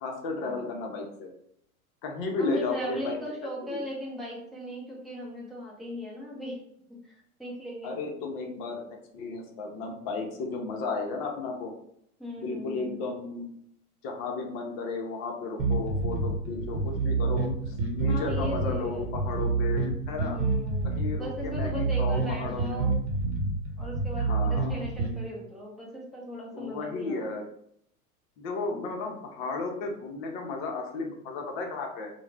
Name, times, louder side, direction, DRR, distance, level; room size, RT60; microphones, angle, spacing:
voice 1, 0.0-1.3 2.0-3.2 3.6-3.8 7.8-8.8 9.1-11.7 12.4-13.5 14.0-20.4 20.8-22.9 24.3-24.8 26.5-27.4 28.4-32.1, left 3 dB, 45° left, 2 dB, 0.7 m, -34 dB
voice 2, 2.4-6.6 7.0-7.9 12.2-13.0 18.1-19.1 20.3-23.0 23.8-27.2 28.7-28.9, equal, ahead, -5 dB, 0.6 m, -38 dB
sound 1, 15.6-25.2, right 3 dB, 50° right, 0.9 m, -28 dB
2.3 x 2.1 x 3.3 m, 0.72 s
hypercardioid pair, 100°, 44 cm